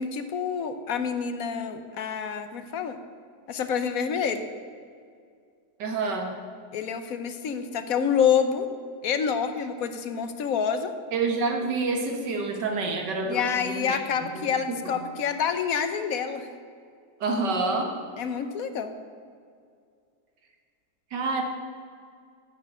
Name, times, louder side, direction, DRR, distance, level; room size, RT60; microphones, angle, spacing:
voice 1, 0.0-3.0 3.5-4.5 6.7-8.7 9.0-10.9 13.2-16.5 18.2-18.9, left 7 dB, 60° left, 9 dB, 1.2 m, -27 dB
voice 2, 5.8-6.4 11.1-14.5 14.8-15.0 17.2-17.9 21.1-21.4, right 3 dB, 80° right, 4 dB, 2.0 m, -28 dB
10.5 x 6.6 x 8.8 m, 2.2 s
omnidirectional pair, 1.8 m